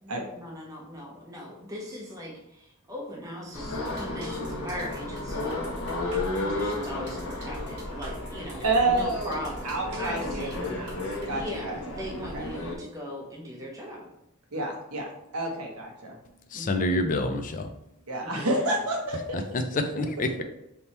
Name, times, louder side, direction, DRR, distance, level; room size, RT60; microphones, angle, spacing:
voice 1, 0.0-5.6 6.4-10.6 11.2-14.1 16.5-16.9 18.2-18.9, left 1 dB, 15° right, -3 dB, 0.7 m, -39 dB
moped pass by, 3.5-12.7, left 2 dB, 65° left, 1.0 m, -33 dB
sound 1, 3.7-11.3, right 3 dB, 50° right, 1.2 m, -49 dB
voice 2, 8.6-11.8 12.3-12.4 14.5-16.1 18.1-19.4, right 2 dB, 85° right, 0 dB, 1.0 m, -29 dB
voice 3, 16.5-17.7 19.3-20.4, left 2 dB, 35° left, 6 dB, 0.4 m, -27 dB
3.5 x 2.9 x 4.1 m, 0.82 s
head